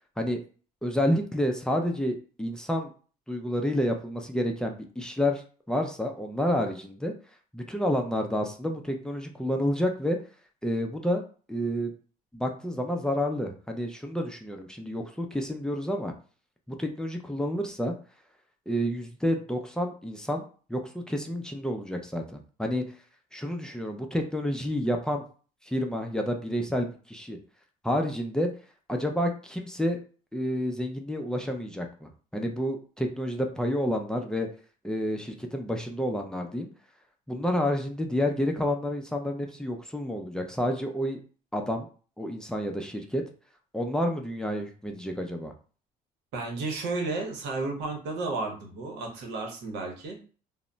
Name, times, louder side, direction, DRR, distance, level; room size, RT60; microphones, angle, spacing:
voice 1, 0.8-2.9 3.3-7.1 7.5-10.2 10.6-11.2 11.5-11.9 12.3-16.1 16.7-17.9 18.7-20.4 20.7-22.8 23.3-25.2 25.6-27.4 27.8-28.5 28.9-30.0 30.3-34.5 34.8-36.7 37.3-41.2 41.5-41.9 42.2-43.2 43.7-45.5, equal, 5° left, 3 dB, 0.4 m, -29 dB
voice 2, 46.3-50.2, right 3 dB, 90° right, 2 dB, 0.8 m, -32 dB
2.1 x 2.1 x 3.8 m, 0.40 s
cardioid pair, 110°, 17 cm